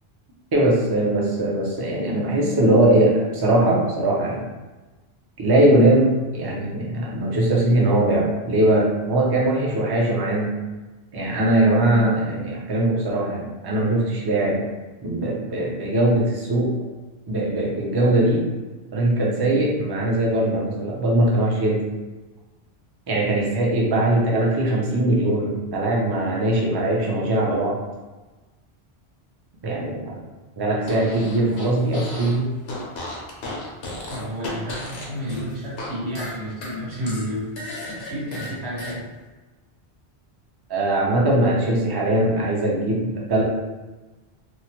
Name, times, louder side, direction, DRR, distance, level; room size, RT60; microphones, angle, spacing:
voice 1, 0.5-4.4 5.4-10.5 11.1-14.7 15.0-16.7 17.3-18.4 18.9-21.8 23.1-27.8 29.6-30.2 30.6-32.5 40.7-43.4, right 1 dB, 35° right, -3 dB, 0.4 m, -21 dB
Fart, 30.8-32.4 32.6-35.9 36.1-38.9, left 2 dB, 75° left, 0.9 m, -35 dB
voice 2, 34.1-37.5 37.9-39.0, equal, 75° right, -7 dB, 1.4 m, -31 dB
3.0 x 2.0 x 2.8 m, 1.2 s
omnidirectional pair, 1.1 m